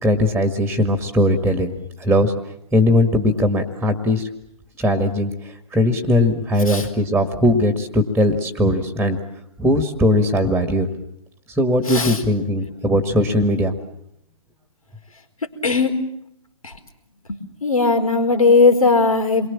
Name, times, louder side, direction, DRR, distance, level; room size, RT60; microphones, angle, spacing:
voice 1, 0.0-1.7 2.0-2.3 2.7-4.3 4.8-5.3 5.7-9.2 9.6-10.9 11.6-13.8, left 1 dB, ahead, 7 dB, 1.8 m, -19 dB
voice 2, 11.9-12.2 15.6-15.9 16.6-16.7 17.3-19.5, left 4 dB, 85° left, 6 dB, 4.7 m, -17 dB
28.5 x 23.0 x 7.3 m, 0.78 s
hypercardioid pair, 140°, 18 cm